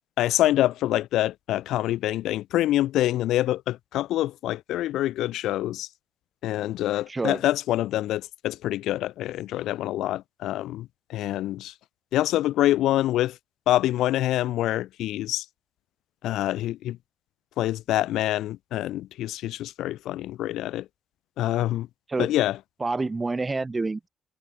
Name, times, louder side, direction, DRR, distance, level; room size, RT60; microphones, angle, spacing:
voice 1, 0.2-5.9 6.4-11.7 12.1-13.4 13.7-15.5 16.2-17.0 17.6-20.9 21.4-21.9 22.2-22.6, left 14 dB, 85° left, 0.7 m, -26 dB
voice 2, 7.1-7.4 22.1-22.3 22.8-24.1, right 3 dB, 25° right, 0.6 m, -27 dB
cardioid pair, 90°, 0 cm